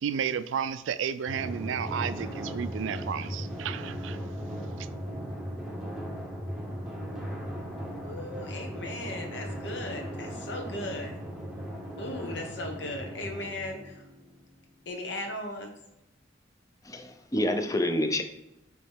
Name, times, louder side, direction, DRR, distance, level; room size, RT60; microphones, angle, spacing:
voice 1, 0.0-4.2 4.8-4.9, right 7 dB, 90° right, 0.3 m, -32 dB
Drum, 1.3-14.4, equal, 5° right, 0.9 m, -37 dB
voice 2, 8.0-11.1 12.0-14.0 14.9-15.7, left 1 dB, 65° left, 1.1 m, -37 dB
voice 3, 16.8-18.2, left 1 dB, 20° left, 0.5 m, -28 dB
8.6 x 3.1 x 3.5 m
head